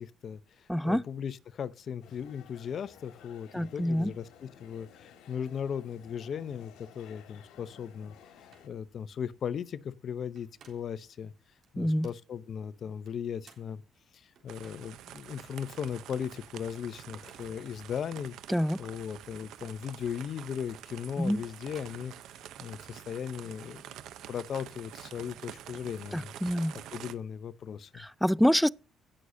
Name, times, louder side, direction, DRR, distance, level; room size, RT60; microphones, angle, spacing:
voice 1, 0.0-11.3 11.7-13.8 14.1-18.4 18.8-22.1 22.6-24.0 24.3-26.3 26.9-28.0, left 8 dB, 55° left, 0.8 m, -37 dB
voice 2, 0.7-1.0 3.5-4.1 11.8-12.1 18.5-18.8 21.2-21.4 26.1-26.8 28.0-28.7, equal, ahead, 0.4 m, -26 dB
sound 1, 2.0-8.7, left 8 dB, 85° left, 1.9 m, -55 dB
sound 2, 8.1-8.2 8.5-8.8 10.2-11.1 11.6-12.3 13.1-15.1 15.6-15.7 17.0-17.7 18.5-18.6 19.9-22.6, right 6 dB, 60° right, 3.6 m, -60 dB
sound 3, 14.5-27.1, right 11 dB, 80° right, 0.8 m, -47 dB
18.0 x 6.4 x 2.8 m
cardioid pair, 90°, 0 cm